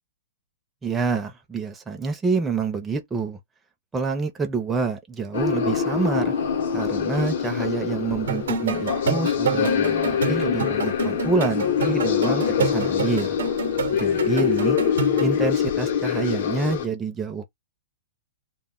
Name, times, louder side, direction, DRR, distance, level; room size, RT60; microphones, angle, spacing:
voice 1, 0.8-3.4 3.9-6.3 6.7-13.4 13.9-14.8 15.2-17.4, right 4 dB, 10° right, 0.4 m, -27 dB
sound 1, 5.3-16.9, left 8 dB, 60° left, 0.7 m, -24 dB
sound 2, 8.3-15.3, right 6 dB, 85° right, 0.6 m, -29 dB
2.1 x 2.1 x 3.5 m
hypercardioid pair, 170°, 0 cm